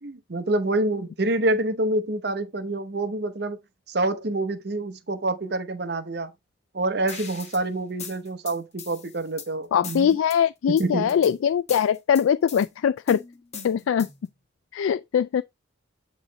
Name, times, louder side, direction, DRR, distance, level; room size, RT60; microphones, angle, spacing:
voice 1, 0.0-3.6 3.9-6.3 6.7-10.2 10.7-11.1, right 2 dB, 55° right, 0.8 m, -27 dB
sound 1, 7.1-7.6 8.0-9.5 9.8-10.4 10.8-11.3 11.7-12.7 13.1-14.3, left 5 dB, 35° left, 1.3 m, -39 dB
voice 2, 9.7-13.2 13.6-14.1 14.7-15.4, left 8 dB, 85° left, 0.3 m, -22 dB
9.5 x 3.2 x 3.9 m
head